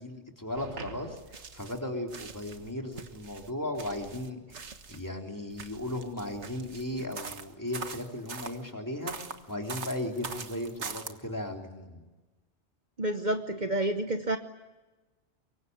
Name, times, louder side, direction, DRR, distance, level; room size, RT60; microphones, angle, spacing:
voice 1, 0.0-12.0, left 1 dB, 15° left, 2 dB, 3.5 m, -36 dB
sound 1, 0.6-1.8 2.1-5.1 5.5-8.6 9.1-11.1, right 5 dB, 75° right, 1.7 m, -42 dB
voice 2, 13.0-14.4, right 1 dB, 45° right, 7 dB, 1.2 m, -29 dB
24.0 x 23.5 x 9.6 m, 1.2 s
omnidirectional pair, 1.2 m